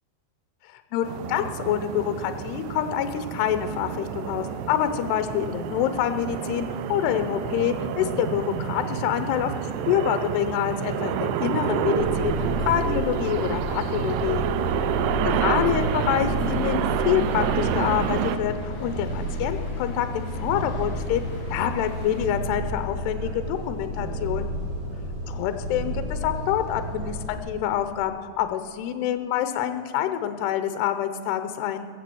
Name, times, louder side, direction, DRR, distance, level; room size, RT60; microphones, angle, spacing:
voice 1, 0.9-9.5 9.9-14.4 15.2-21.2 21.5-24.5 25.3-31.9, left 10 dB, 85° left, 10 dB, 2.8 m, -26 dB
sound 1, 1.0-18.4, right 9 dB, 90° right, 2.8 m, -28 dB
sound 2, 11.6-22.3, left 1 dB, 60° left, 5.8 m, -44 dB
Purr, 12.0-27.4, left 1 dB, 45° right, 5.3 m, -31 dB
20.5 x 7.6 x 7.8 m, 2.5 s
omnidirectional pair, 4.8 m